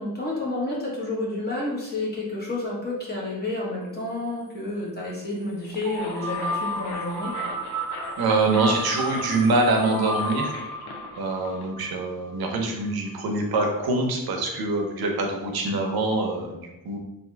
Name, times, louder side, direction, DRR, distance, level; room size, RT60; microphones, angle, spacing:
voice 1, 0.0-7.3, left 2 dB, 25° left, -5 dB, 1.1 m, -30 dB
sound 1, 5.5-11.7, left 4 dB, 85° left, 0.5 m, -40 dB
sound 2, 5.8-12.6, equal, 45° right, 0.6 m, -33 dB
voice 2, 8.2-10.5 11.2-17.0, right 2 dB, 75° right, 2 dB, 0.8 m, -24 dB
3.5 x 2.7 x 3.3 m, 0.94 s
wide cardioid pair, 135°, 37 cm